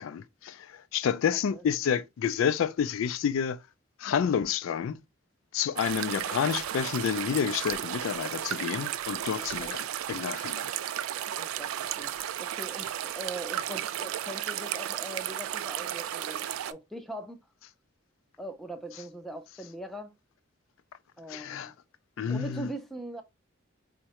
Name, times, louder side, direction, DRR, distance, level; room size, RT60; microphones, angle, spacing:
voice 1, 0.0-3.6 4.0-5.0 5.5-10.7 21.3-21.7 22.2-22.7, left 7 dB, 75° left, 0.3 m, -29 dB
sound 1, 5.8-16.7, right 11 dB, 90° right, 0.3 m, -34 dB
voice 2, 9.4-9.8 11.3-17.4 18.4-20.1 21.2-21.7 22.3-23.2, right 1 dB, ahead, 0.4 m, -41 dB
4.6 x 2.1 x 2.8 m
head